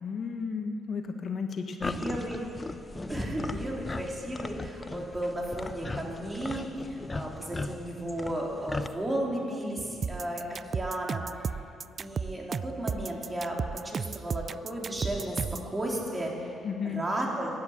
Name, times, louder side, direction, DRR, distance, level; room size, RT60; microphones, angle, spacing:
voice 1, 0.0-1.9 16.6-17.0, left 5 dB, 55° left, 5 dB, 1.3 m, -33 dB
sound 1, 1.8-8.9, left 3 dB, 25° left, 0.8 m, -38 dB
voice 2, 1.8-2.4 2.9-10.4 10.7-11.4 12.0-16.6 16.8-17.5, right 1 dB, 20° right, -2 dB, 3.8 m, -34 dB
sound 2, 10.0-15.7, right 6 dB, 45° right, 0.3 m, -33 dB
16.0 x 11.0 x 7.4 m, 2.6 s
supercardioid pair, 60°, 0 cm